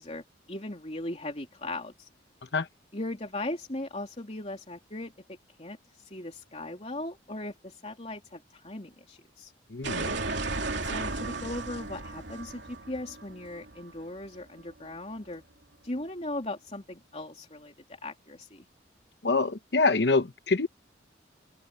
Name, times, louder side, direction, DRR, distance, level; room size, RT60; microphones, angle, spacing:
voice 1, 0.0-2.1 2.9-5.1 5.6-5.8 6.0-9.5 10.8-15.4 15.8-17.7 18.0-18.6, left 2 dB, 35° left, 3.2 m, -38 dB
voice 2, 9.7-10.1 19.2-20.7, left 3 dB, 60° left, 0.9 m, -25 dB
sound 1, 9.8-14.6, right 3 dB, 65° right, 3.0 m, -35 dB
open air
head